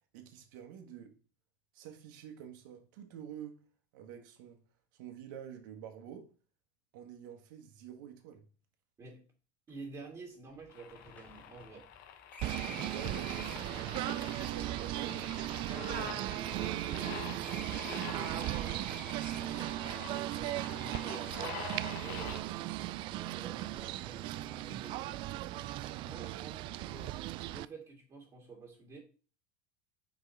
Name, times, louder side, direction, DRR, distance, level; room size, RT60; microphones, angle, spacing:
voice 1, 0.1-1.1 1.7-3.6 3.9-4.6 4.9-6.3 6.9-8.4 12.5-13.4 14.1-15.3, right 9 dB, 75° right, 1.4 m, -47 dB
sound 1, 9.7-9.8 10.0-10.1 10.5-13.8 14.6-17.1 17.4-19.7, left 2 dB, 15° left, 2.3 m, -50 dB
voice 2, 9.7-11.9 12.5-12.7 15.7-16.2 16.5-19.0 19.4-21.6 22.0-22.6 23.1-25.2 26.0-27.2 27.5-29.0, right 4 dB, 30° right, 2.1 m, -50 dB
sound 2, 10.7-22.4, left 9 dB, 75° left, 1.0 m, -47 dB
Singing / Bird, 12.4-27.7, right 15 dB, 50° right, 0.3 m, -37 dB
4.9 x 4.8 x 4.1 m
supercardioid pair, 110°, 11 cm